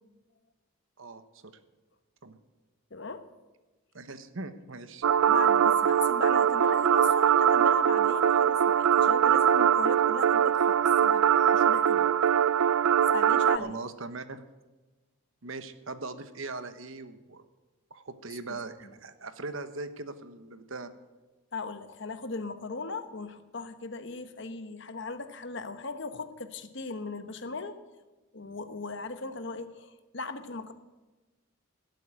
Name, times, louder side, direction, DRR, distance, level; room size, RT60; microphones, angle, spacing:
voice 1, 1.0-1.5 2.2-2.4 3.9-5.1 13.6-14.4 15.4-17.4 17.9-20.9, right 3 dB, 65° right, 10 dB, 1.1 m, -40 dB
voice 2, 2.9-3.3 5.3-12.1 13.1-13.7 18.5-18.9 21.5-27.8 28.3-30.7, left 3 dB, 55° left, 10 dB, 1.0 m, -38 dB
sound 1, 5.0-13.6, right 9 dB, 85° right, 0.4 m, -22 dB
17.0 x 7.7 x 9.0 m, 1.2 s
head